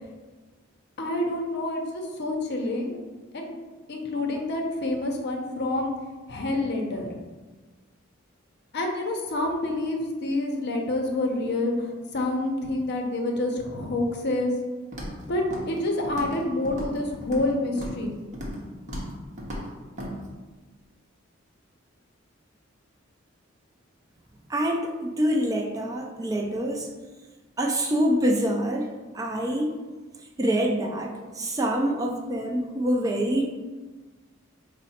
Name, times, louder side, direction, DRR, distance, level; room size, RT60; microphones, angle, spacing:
voice 1, 1.0-3.0 3.3-3.5 3.9-5.9 6.3-7.1 8.7-14.5 15.3-18.1, left 2 dB, 55° left, 2 dB, 0.6 m, -28 dB
Walk footsteps, 14.9-15.2 15.5-16.4 16.6-17.5 17.8-18.0 18.3-18.6 18.9-19.1 19.4-19.6 20.0-20.1, equal, 35° right, 0.9 m, -35 dB
voice 2, 24.5-26.9 27.6-28.9 29.1-29.8 30.4-33.5, equal, 15° right, 0 dB, 0.3 m, -25 dB
4.7 x 2.1 x 4.1 m, 1.3 s
head